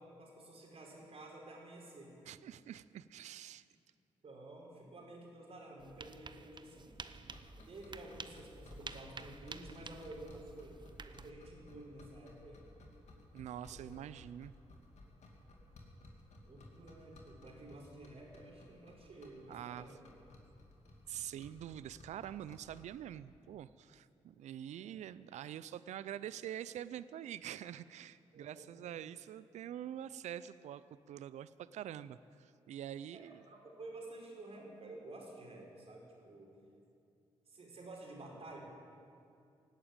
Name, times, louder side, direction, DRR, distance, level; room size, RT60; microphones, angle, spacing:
voice 1, 0.0-2.1 4.2-7.0 7.6-12.6 13.7-13.9 16.4-20.0 20.8-21.0 24.8-24.9 28.3-28.9 33.1-36.6 37.5-38.6, right 2 dB, 55° right, -1 dB, 4.7 m, -51 dB
voice 2, 2.3-3.6 13.3-14.5 19.5-20.0 21.1-33.4, right 10 dB, 75° right, 16 dB, 0.4 m, -46 dB
sound 1, 5.8-11.3, right 4 dB, 40° right, 0.8 m, -51 dB
sound 2, 7.2-23.0, left 1 dB, 70° left, 2.6 m, -58 dB
18.0 x 8.9 x 8.8 m, 2.5 s
supercardioid pair, 50°, 12 cm